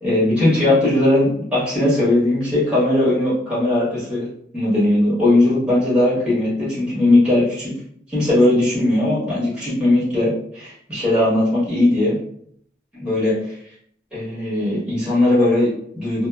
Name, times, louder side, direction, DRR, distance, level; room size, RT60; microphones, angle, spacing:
voice 1, 0.0-4.3 4.5-7.7 8.1-12.2 13.0-13.3 14.1-16.3, left 1 dB, 5° right, -8 dB, 1.1 m, -18 dB
2.7 x 2.0 x 2.3 m, 0.65 s
head